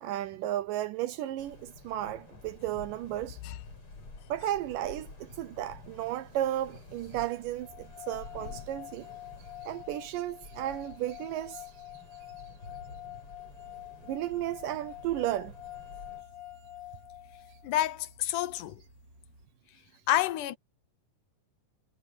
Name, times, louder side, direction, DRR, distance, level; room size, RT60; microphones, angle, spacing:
voice 1, 0.0-3.4 4.3-9.1 9.6-11.7 14.0-15.5, right 13 dB, 80° right, 2.3 m, -34 dB
sound 1, 1.4-16.2, left 3 dB, 35° left, 6.2 m, -50 dB
sound 2, 7.6-17.7, left 16 dB, 50° right, 5.5 m, -47 dB
sound 3, 13.4-19.5, right 1 dB, 30° right, 4.8 m, -58 dB
voice 2, 17.6-18.8 20.1-20.6, left 13 dB, 75° left, 2.1 m, -29 dB
omnidirectional pair, 4.0 m